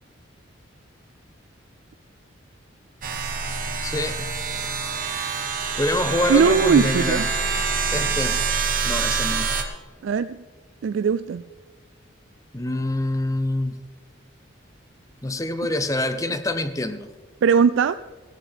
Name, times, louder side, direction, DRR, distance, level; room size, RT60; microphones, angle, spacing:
sound 1, 3.0-9.6, right 5 dB, 45° right, 1.3 m, -26 dB
voice 1, 3.8-4.3 5.8-7.2 7.9-8.4 8.8-9.5 12.5-13.8 15.2-17.1, left 1 dB, 15° left, 10 dB, 0.6 m, -25 dB
voice 2, 6.3-7.3 10.0-10.4 10.8-11.4 17.4-18.0, right 6 dB, 75° right, 13 dB, 0.3 m, -19 dB
15.5 x 14.0 x 3.5 m, 1.4 s
head